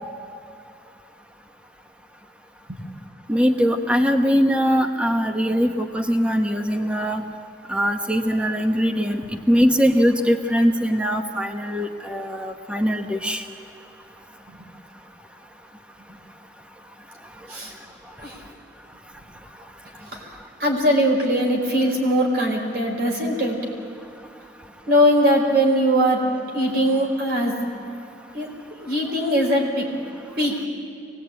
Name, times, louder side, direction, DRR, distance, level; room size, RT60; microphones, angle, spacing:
voice 1, 3.3-7.2 7.7-9.2 9.5-13.4, equal, 5° right, 4 dB, 1.0 m, -21 dB
voice 2, 20.6-23.6 24.9-26.2 26.5-27.5 28.3-29.9 30.4-30.6, equal, 65° right, 0 dB, 5.0 m, -21 dB
24.0 x 19.0 x 9.0 m, 2.6 s
head